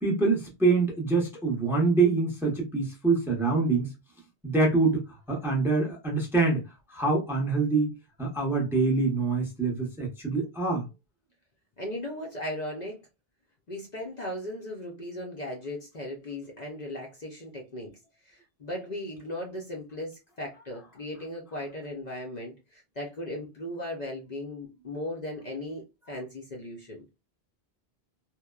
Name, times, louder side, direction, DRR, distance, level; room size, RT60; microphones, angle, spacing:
voice 1, 0.0-3.9 4.4-6.6 6.9-7.9 8.2-10.8, right 3 dB, 5° right, 0.6 m, -25 dB
voice 2, 11.8-13.0 13.7-17.9 18.2-27.0, left 1 dB, 50° left, 0.6 m, -37 dB
3.0 x 2.0 x 2.2 m
omnidirectional pair, 1.1 m